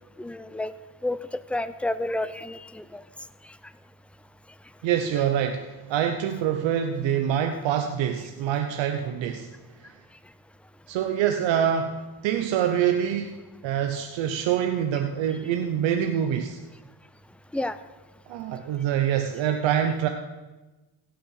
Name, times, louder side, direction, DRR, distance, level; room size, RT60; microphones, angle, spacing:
voice 1, 0.2-0.7 1.0-1.2 1.5-3.0 17.5-17.8, left 1 dB, 5° left, 13 dB, 0.5 m, -30 dB
voice 2, 4.8-9.5 10.9-13.4 13.6-16.6 18.3-20.1, right 9 dB, 90° right, 6 dB, 0.9 m, -25 dB
16.5 x 6.2 x 6.4 m, 1.1 s
cardioid pair, 80°, 44 cm